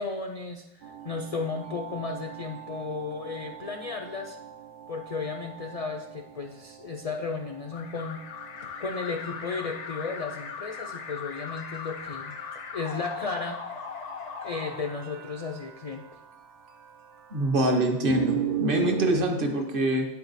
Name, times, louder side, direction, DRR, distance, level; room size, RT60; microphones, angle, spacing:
voice 1, 0.0-4.4 4.9-8.2 8.8-12.4 12.7-13.6 14.4-16.0, left 4 dB, 60° left, 3 dB, 0.3 m, -34 dB
sound 1, 0.8-19.1, right 10 dB, 80° right, 1.0 m, -39 dB
Alarm, 7.7-15.6, left 6 dB, 85° left, 1.1 m, -39 dB
voice 2, 17.3-20.1, right 1 dB, 50° right, 3 dB, 1.1 m, -24 dB
8.8 x 4.7 x 4.0 m, 0.95 s
omnidirectional pair, 1.2 m